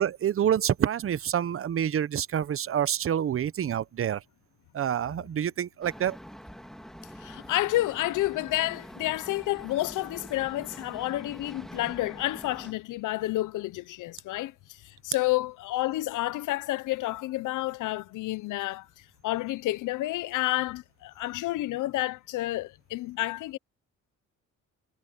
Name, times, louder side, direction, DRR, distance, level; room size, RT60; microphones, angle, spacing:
voice 1, 0.0-4.2 4.7-6.2, right 9 dB, 45° right, 0.8 m, -27 dB
sound 1, 5.8-12.7, equal, ahead, 2.5 m, -45 dB
voice 2, 7.2-14.5 14.8-18.9 19.2-23.6, left 17 dB, 85° left, 0.7 m, -30 dB
cardioid pair, 90°, 30 cm